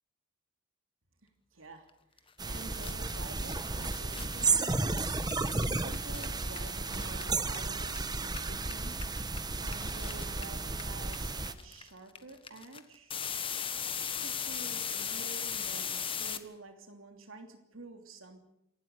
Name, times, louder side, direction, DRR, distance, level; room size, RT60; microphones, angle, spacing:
voice 1, 1.2-9.0 9.5-13.2 13.7-18.4, right 2 dB, 90° right, 5 dB, 3.0 m, -49 dB
sound 1, 2.2-2.3 2.5-8.0 8.3-16.4, left 7 dB, 25° left, 1.4 m, -38 dB
sound 2, 2.4-11.5, right 3 dB, 20° right, 1.2 m, -33 dB
28.0 x 12.5 x 9.5 m, 0.77 s
head